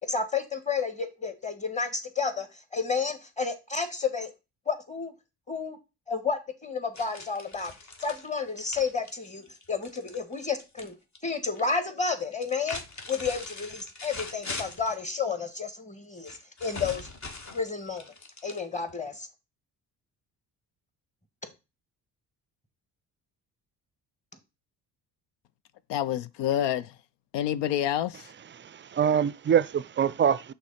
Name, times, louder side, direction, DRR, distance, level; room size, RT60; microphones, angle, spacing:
voice 1, 0.0-4.3 4.6-5.1 5.5-5.8 6.1-7.7 8.0-10.9 11.2-12.8 13.1-17.1 17.5-18.0 18.4-19.3 21.4-21.5, left 5 dB, 15° left, 1.6 m, -31 dB
sound 1, 6.9-10.9 11.1-11.8 12.3-15.0 16.2-18.9, left 3 dB, 40° left, 1.4 m, -41 dB
voice 2, 25.9-26.9 27.3-28.3, left 11 dB, 75° left, 0.6 m, -28 dB
voice 3, 28.6-30.5, right 8 dB, 30° right, 0.4 m, -24 dB
6.1 x 3.3 x 5.6 m
supercardioid pair, 60°, 44 cm